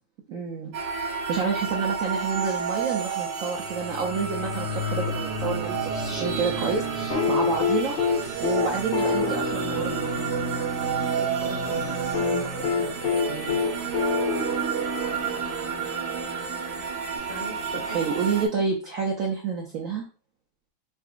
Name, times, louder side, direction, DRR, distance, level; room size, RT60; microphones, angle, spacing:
voice 1, 0.3-0.7 1.3-8.0 8.4-10.2 17.9-20.1, right 5 dB, 85° right, 0 dB, 0.7 m, -29 dB
sound 1, 0.7-18.5, right 5 dB, 65° right, 1.3 m, -30 dB
sound 2, 7.1-11.2 12.1-15.7 17.2-17.3, left 5 dB, 60° left, 1.5 m, -27 dB
voice 2, 11.1-13.7 17.3-18.1, equal, 25° left, -3 dB, 1.2 m, -39 dB
3.9 x 3.5 x 2.4 m, 0.36 s
omnidirectional pair, 2.2 m